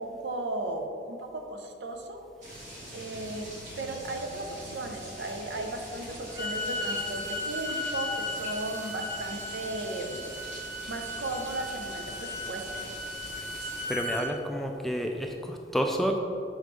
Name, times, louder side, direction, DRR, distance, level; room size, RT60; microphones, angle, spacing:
voice 1, 0.0-2.2 2.9-3.5 3.8-10.3 10.9-12.9, right 2 dB, 90° right, 4 dB, 0.7 m, -36 dB
sound 1, 2.4-13.9, right 1 dB, 45° right, 1.4 m, -44 dB
Bowed string instrument, 6.2-14.3, left 1 dB, 25° right, 1.2 m, -36 dB
voice 2, 13.9-16.2, equal, ahead, 2 dB, 0.3 m, -29 dB
6.3 x 5.2 x 3.2 m, 2.5 s
head